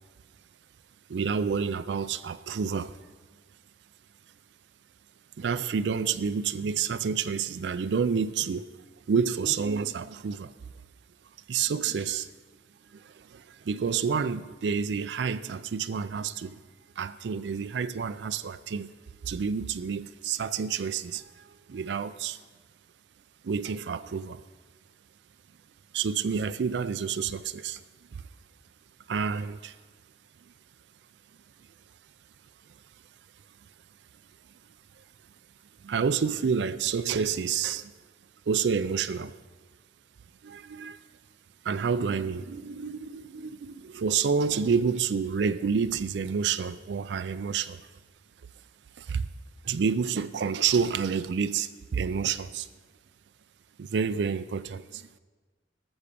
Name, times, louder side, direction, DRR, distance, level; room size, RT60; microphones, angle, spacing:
voice 1, 1.1-3.0 5.4-8.7 9.1-10.5 11.5-12.3 12.9-16.6 17.0-18.9 19.2-22.4 23.4-24.4 25.9-27.8 28.1-28.2 29.1-29.7 35.8-37.9 38.5-39.4 40.4-41.0 41.6-47.8 49.0-49.3 49.6-52.7 53.8-55.1, right 6 dB, 80° right, 0.4 m, -29 dB
13.5 x 7.1 x 6.8 m
head